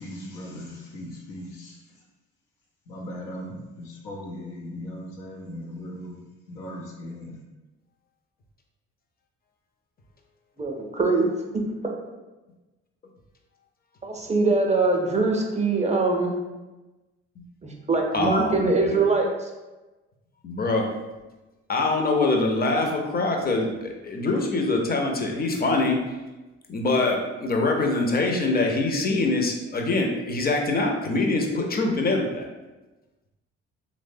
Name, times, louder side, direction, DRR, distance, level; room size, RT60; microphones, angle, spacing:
voice 1, 0.0-2.1 2.9-7.4, left 1 dB, 90° left, -2 dB, 0.7 m, -38 dB
voice 2, 10.6-11.6 14.0-16.4 17.6-19.5, right 3 dB, 20° right, 1 dB, 0.5 m, -23 dB
voice 3, 18.1-18.9 20.4-20.9 21.7-26.0 26.7-32.5, left 2 dB, 30° left, 1 dB, 0.6 m, -24 dB
3.1 x 2.1 x 2.6 m, 1.1 s
supercardioid pair, 55°, 31 cm